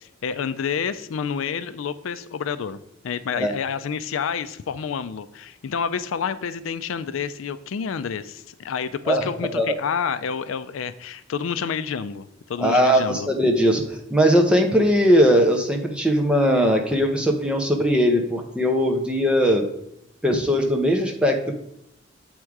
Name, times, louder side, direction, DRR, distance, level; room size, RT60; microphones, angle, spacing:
voice 1, 0.0-13.3, left 6 dB, 85° left, 13 dB, 0.4 m, -29 dB
voice 2, 12.6-19.6 20.2-21.5, equal, 5° right, 3 dB, 0.7 m, -19 dB
7.7 x 3.6 x 4.6 m, 0.80 s
head